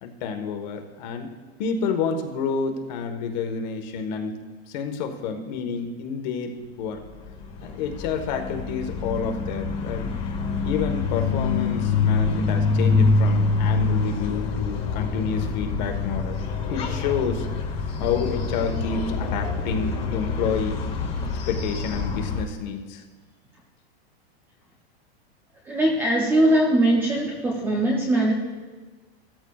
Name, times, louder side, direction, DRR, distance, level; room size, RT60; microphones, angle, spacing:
voice 1, 0.0-1.3 1.6-4.4 4.7-7.0 7.6-10.1 10.6-16.4 16.7-17.5 17.8-20.8 21.5-23.0, left 5 dB, 45° left, 5 dB, 1.3 m, -29 dB
sound 1, 7.0-22.4, left 4 dB, 20° left, 1.1 m, -25 dB
voice 2, 25.7-28.3, right 1 dB, 5° right, -2 dB, 0.5 m, -21 dB
16.0 x 13.5 x 2.4 m, 1.4 s
supercardioid pair, 170°, 32 cm